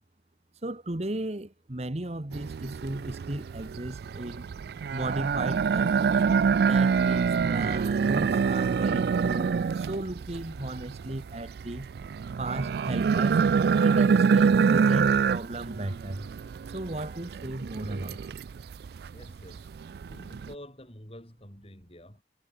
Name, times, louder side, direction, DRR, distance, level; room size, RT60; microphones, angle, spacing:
voice 1, 0.6-4.4 4.9-6.0 6.6-11.9 12.4-13.4 13.8-16.3 16.7-18.2, right 1 dB, 35° right, 1.2 m, -35 dB
sound 1, 2.3-20.5, right 6 dB, 55° right, 0.3 m, -26 dB
voice 2, 19.1-19.7 20.1-22.2, left 1 dB, 30° left, 5.4 m, -48 dB
head